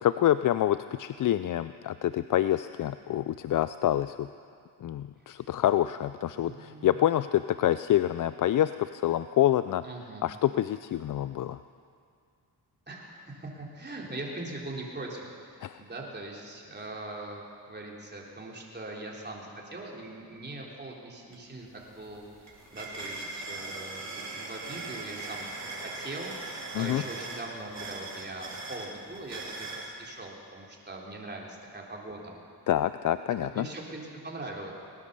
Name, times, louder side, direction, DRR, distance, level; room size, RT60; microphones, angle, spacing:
voice 1, 0.0-4.3 4.8-9.8 10.2-11.6 15.6-15.8 26.7-27.0 32.7-33.7, left 12 dB, 50° left, 13 dB, 0.4 m, -27 dB
voice 2, 6.3-7.0 9.8-10.2 12.9-17.4 17.7-25.5 25.8-32.4 33.4-34.7, right 2 dB, 25° right, -2 dB, 3.5 m, -41 dB
sound 1, 21.3-21.4 21.7-29.9, right 2 dB, 40° right, 3.6 m, -40 dB
19.0 x 11.0 x 6.8 m, 2.3 s
cardioid pair, 70°, 43 cm